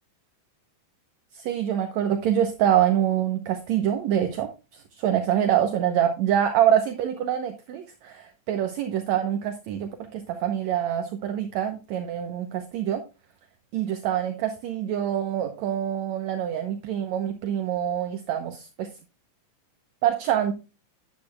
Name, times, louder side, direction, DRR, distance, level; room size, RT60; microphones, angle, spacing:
voice 1, 1.3-13.0 13.7-18.9 20.0-20.5, right 10 dB, 70° right, 7 dB, 2.0 m, -25 dB
11.0 x 10.5 x 2.3 m, 0.29 s
omnidirectional pair, 3.8 m